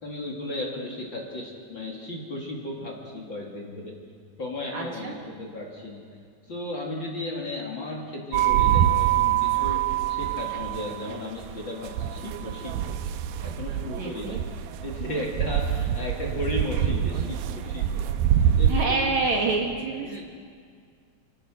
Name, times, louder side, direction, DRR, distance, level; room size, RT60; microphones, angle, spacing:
voice 1, 0.0-4.0 4.4-6.0 6.4-13.0 13.4-18.1 18.3-19.6 20.0-20.2, left 1 dB, 35° left, -1 dB, 2.7 m, -35 dB
voice 2, 4.7-5.2 14.0-14.4 18.4-20.2, right 4 dB, 55° right, 0 dB, 2.3 m, -27 dB
sound 1, 8.3-18.9, right 10 dB, 85° right, 2.6 m, -25 dB
28.5 x 17.0 x 6.3 m, 2.1 s
omnidirectional pair, 4.5 m